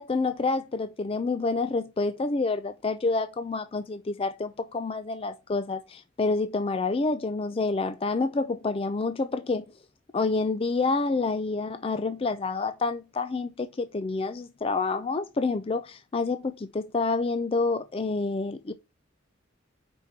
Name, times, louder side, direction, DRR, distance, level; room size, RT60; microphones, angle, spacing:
voice 1, 0.0-9.7 10.1-18.7, left 3 dB, 30° left, 0.4 m, -28 dB
5.3 x 4.3 x 4.5 m
head